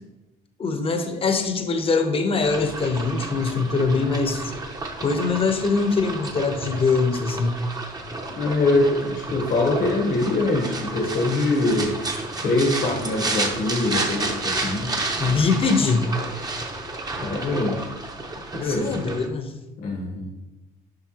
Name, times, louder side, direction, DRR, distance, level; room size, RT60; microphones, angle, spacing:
voice 1, 0.6-4.5 5.0-7.6 15.2-16.1 18.6-19.5, left 4 dB, 35° left, 7 dB, 0.9 m, -23 dB
sound 1, 2.4-19.3, right 2 dB, 20° right, 0.9 m, -31 dB
voice 2, 8.3-11.9 12.4-14.9 17.2-17.9 18.5-19.0 19.8-20.3, left 2 dB, 55° left, -1 dB, 1.2 m, -23 dB
7.8 x 5.7 x 3.0 m, 1.1 s
cardioid pair, 110°, 17 cm